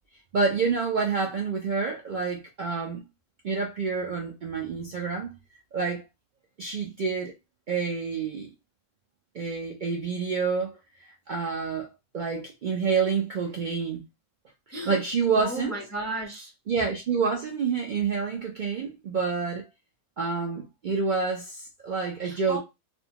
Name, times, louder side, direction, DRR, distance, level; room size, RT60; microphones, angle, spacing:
voice 1, 0.3-3.1 3.4-5.4 5.7-6.0 6.6-7.3 7.7-8.5 9.3-11.9 12.1-14.0 14.8-15.8 16.7-19.7 20.2-22.6, right 5 dB, 90° right, 0.4 m, -28 dB
voice 2, 15.3-16.5 22.2-22.6, right 1 dB, 15° left, 0.5 m, -34 dB
2.5 x 2.2 x 2.8 m
omnidirectional pair, 1.5 m